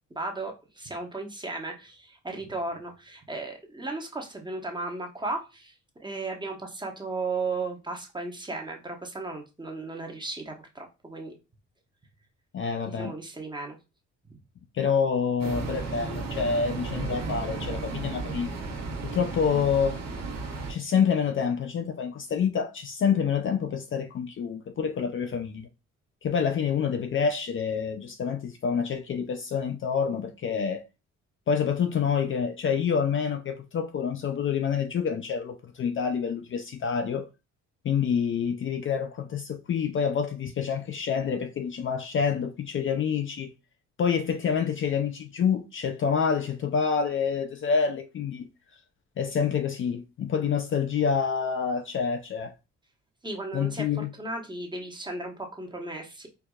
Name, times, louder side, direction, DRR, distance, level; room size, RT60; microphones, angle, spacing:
voice 1, 0.1-5.7 6.0-11.3 12.9-13.8 14.3-14.4 53.2-56.3, right 3 dB, 15° right, 0.9 m, -35 dB
voice 2, 12.5-13.1 14.7-18.5 19.1-20.0 20.7-25.7 26.2-30.8 31.5-37.3 37.8-43.5 44.0-48.5 49.2-52.5 53.5-54.1, left 6 dB, 45° left, 0.4 m, -27 dB
sound 1, 15.4-20.7, right 4 dB, 60° right, 1.1 m, -34 dB
4.6 x 2.6 x 2.3 m
cardioid pair, 90°, 30 cm